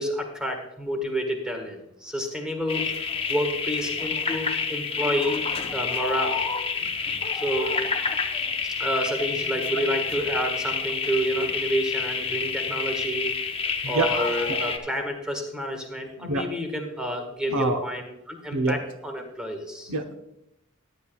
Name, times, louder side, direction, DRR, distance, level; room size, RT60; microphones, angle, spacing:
voice 1, 0.0-2.9 3.3-5.4 5.7-6.4 7.3-7.8 8.8-13.3 13.8-19.9, equal, 5° right, 3 dB, 1.5 m, -29 dB
sound 1, 2.7-14.8, left 5 dB, 25° left, 0.7 m, -28 dB
voice 2, 17.5-17.8 18.5-18.8 19.9-20.1, right 3 dB, 70° right, 7 dB, 0.8 m, -26 dB
14.0 x 10.5 x 2.3 m, 0.82 s
head